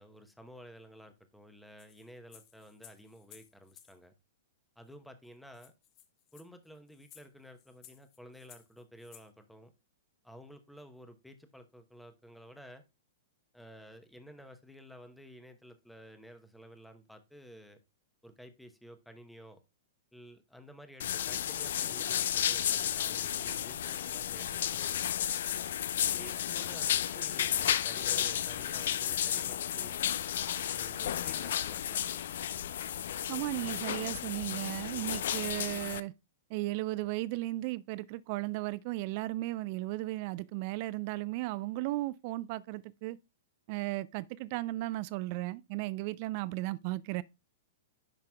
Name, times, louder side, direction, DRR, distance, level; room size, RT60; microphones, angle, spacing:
voice 1, 0.0-4.1 4.8-5.7 6.3-9.7 10.2-12.8 13.5-17.8 18.2-19.6 20.1-25.2 26.0-30.0 30.7-32.5, equal, ahead, 1.0 m, -53 dB
sound 1, 1.8-4.0 4.9-5.0 5.2-5.3 5.5-9.3, left 10 dB, 35° left, 1.0 m, -58 dB
sound 2, 21.0-36.0, left 10 dB, 60° left, 0.4 m, -33 dB
voice 2, 33.3-36.1 36.5-43.2 43.7-47.2, right 18 dB, 45° right, 0.4 m, -35 dB
10.5 x 5.8 x 2.3 m
figure-of-eight pair, 105°, 0 cm